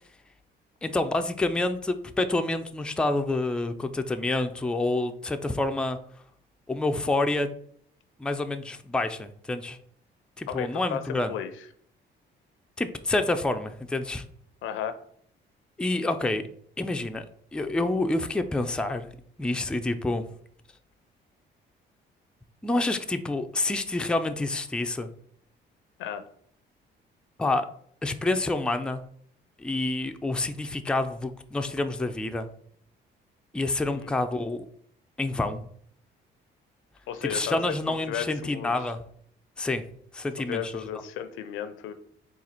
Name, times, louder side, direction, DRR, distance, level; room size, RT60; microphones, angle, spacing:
voice 1, 0.8-6.0 6.7-7.5 8.2-9.8 10.4-11.3 12.8-14.2 15.8-16.4 16.8-17.2 17.5-19.1 19.4-20.3 22.6-25.1 27.4-27.7 28.0-29.0 29.6-32.5 33.5-34.7 35.2-35.6 37.2-39.0 39.6-39.8 40.1-40.7, left 2 dB, 5° left, 7 dB, 0.3 m, -28 dB
voice 2, 10.5-11.0 11.3-11.5 14.6-14.9 26.0-26.2 33.9-34.1 37.1-38.7 40.4-41.9, left 9 dB, 90° left, 10 dB, 0.5 m, -34 dB
3.9 x 2.4 x 4.3 m, 0.64 s
cardioid pair, 90°, 20 cm